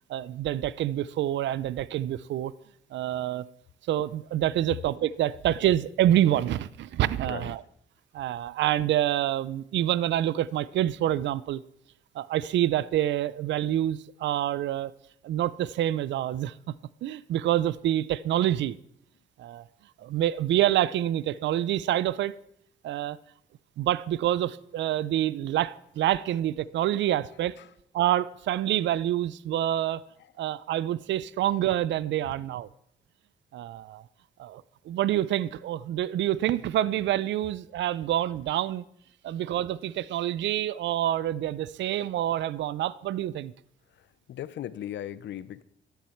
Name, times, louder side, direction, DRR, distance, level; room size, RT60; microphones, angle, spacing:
voice 1, 0.1-2.5 2.9-3.4 3.9-7.6 8.1-11.6 12.1-14.9 15.2-16.5 17.0-18.8 19.4-19.6 20.0-22.4 22.8-23.2 23.8-27.5 27.9-30.0 30.4-32.7 33.5-34.0 34.4-38.8 39.2-43.5, right 12 dB, 65° right, 0.5 m, -27 dB
voice 2, 7.3-7.6 27.6-27.7 30.2-30.3 43.9-45.6, left 11 dB, 65° left, 0.7 m, -38 dB
13.0 x 10.5 x 4.5 m
cardioid pair, 90°, 20 cm